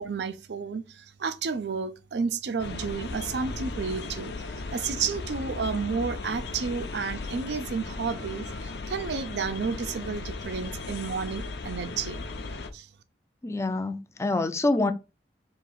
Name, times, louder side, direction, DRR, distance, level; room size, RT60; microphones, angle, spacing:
voice 1, 0.0-4.3 4.7-12.2 12.7-12.9, right 5 dB, 75° right, 0.5 m, -31 dB
sound 1, 2.6-12.7, left 3 dB, 70° left, 0.6 m, -36 dB
voice 2, 13.4-14.9, left 2 dB, 15° left, 0.4 m, -26 dB
4.0 x 2.7 x 4.0 m
head